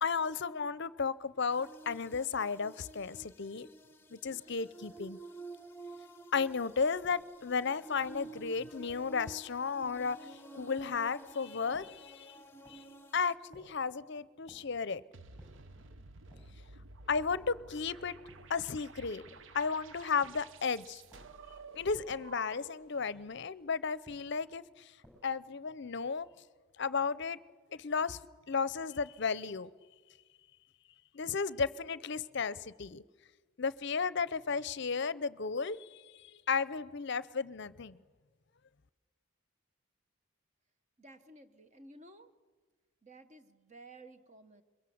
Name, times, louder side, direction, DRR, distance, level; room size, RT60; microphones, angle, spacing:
voice 1, 0.0-3.7 4.1-5.2 6.3-10.2 10.5-12.3 12.7-12.8 13.1-15.0 17.1-18.1 18.5-19.2 19.5-21.0 21.8-24.6 25.2-26.3 26.8-27.4 27.7-28.2 28.5-29.7 31.1-33.0 33.6-38.0, left 5 dB, 55° left, 18 dB, 0.6 m, -34 dB
sound 1, 1.5-13.3, right 2 dB, 10° left, 0.9 m, -51 dB
sound 2, 7.0-7.4 8.0-8.3 8.9-9.3 9.8-10.2 10.8-11.2 11.7-12.1 12.6-13.0 13.5-13.9 14.5-14.8 15.4-15.8 16.3-16.7 17.3-17.7 18.3-18.7 19.3-19.7 20.2-20.6 21.1-21.5 22.1-22.5 23.1-23.5 24.0-24.5 25.0-25.5, equal, 10° right, 6.6 m, -61 dB
sound 3, 15.1-22.9, right 3 dB, 60° right, 0.8 m, -52 dB
voice 2, 41.0-42.4 43.0-44.6, right 2 dB, 35° right, 9 dB, 1.1 m, -55 dB
22.5 x 22.5 x 7.8 m, 1.4 s
head